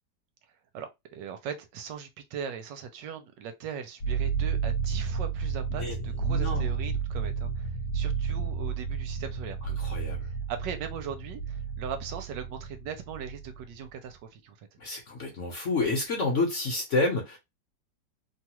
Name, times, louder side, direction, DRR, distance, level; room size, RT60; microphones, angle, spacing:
voice 1, 0.7-9.8 10.2-14.7, right 7 dB, 75° right, 1.2 m, -39 dB
sound 1, 4.0-13.8, right 6 dB, 70° left, 1.2 m, -31 dB
voice 2, 5.7-6.7 9.8-10.3 14.8-17.4, left 2 dB, 50° left, 1.0 m, -29 dB
3.1 x 2.3 x 2.9 m
omnidirectional pair, 2.0 m